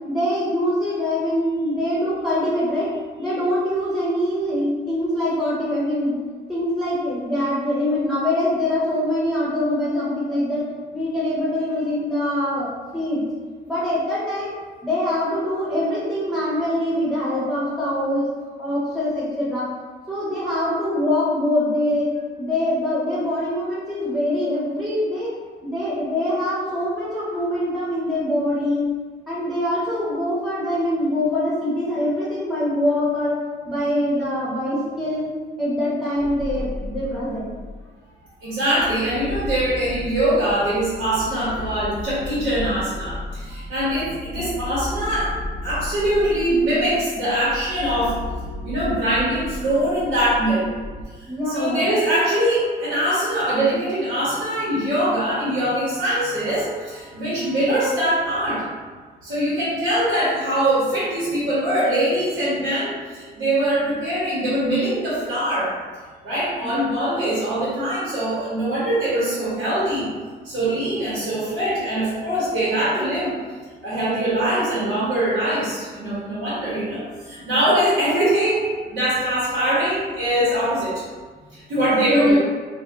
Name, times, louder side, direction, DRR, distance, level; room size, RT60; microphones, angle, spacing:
voice 1, 0.0-2.9 3.2-6.1 6.5-10.7 10.9-13.2 13.7-14.5 14.8-18.2 18.6-19.7 20.1-22.1 22.4-25.3 25.6-28.8 29.3-33.3 33.7-35.3 35.6-37.5 51.2-51.9 66.6-66.7 77.4-77.5 82.1-82.4, left 1 dB, ahead, -10 dB, 0.9 m, -23 dB
sound 1, 36.2-37.9 38.5-51.0, left 1 dB, 35° left, 0.5 m, -34 dB
voice 2, 38.4-45.3 45.6-48.2 48.6-50.7 51.2-58.7 59.2-65.7 66.2-70.1 70.4-73.4 73.8-81.0 81.5-82.4, right 1 dB, 90° right, -10 dB, 1.2 m, -22 dB
2.6 x 2.3 x 3.4 m, 1.5 s
cardioid pair, 90°, 20 cm